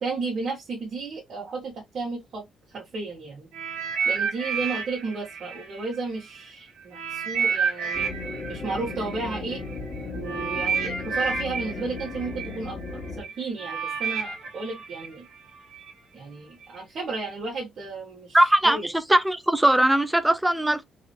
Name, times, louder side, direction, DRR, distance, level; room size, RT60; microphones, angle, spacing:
voice 1, 0.0-3.5 4.0-8.1 8.5-9.6 10.1-15.3 16.1-18.4 18.6-18.9, right 3 dB, 55° right, 1.7 m, -33 dB
sound 1, 3.5-6.4 6.9-15.9 16.6-16.8, right 6 dB, 90° right, 1.9 m, -30 dB
sound 2, 7.9-13.2, left 3 dB, 45° left, 1.5 m, -36 dB
voice 2, 18.3-20.8, right 1 dB, 10° right, 0.7 m, -20 dB
4.0 x 2.8 x 3.0 m
cardioid pair, 90°, 0 cm